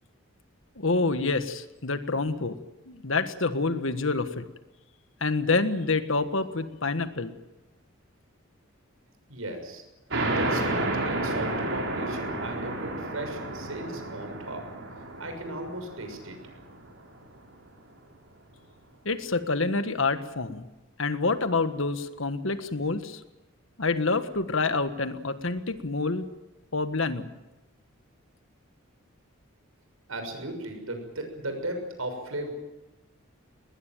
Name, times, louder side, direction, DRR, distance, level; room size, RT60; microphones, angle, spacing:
voice 1, 0.8-2.6 2.9-4.5 5.2-7.4 19.0-20.7 21.0-23.2 23.8-26.3 26.7-27.3, left 3 dB, 65° left, 10 dB, 1.5 m, -27 dB
voice 2, 9.3-9.8 10.3-14.7 15.2-16.6 30.1-32.5, right 1 dB, 85° right, 5 dB, 6.6 m, -36 dB
sound 1, 10.1-17.3, right 2 dB, 65° right, 5.5 m, -31 dB
20.5 x 20.5 x 9.2 m, 1.0 s
head